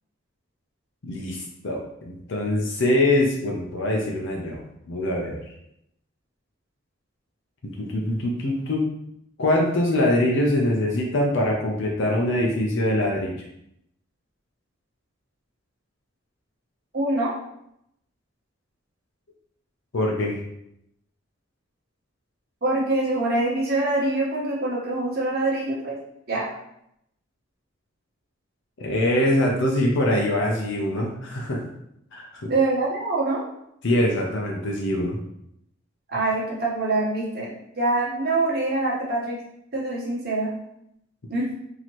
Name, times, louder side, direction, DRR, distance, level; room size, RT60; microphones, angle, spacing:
voice 1, 1.0-4.6 4.9-5.4 7.6-8.9 9.4-13.3 19.9-20.4 28.8-31.7 32.1-32.5 33.8-35.2, left 1 dB, 65° left, -1 dB, 0.6 m, -23 dB
voice 2, 16.9-17.3 22.6-26.0 26.3-26.5 32.5-33.4 36.1-39.4 39.7-40.5 41.3-41.5, right 2 dB, 50° right, -5 dB, 1.2 m, -24 dB
4.2 x 2.9 x 3.0 m, 0.78 s
head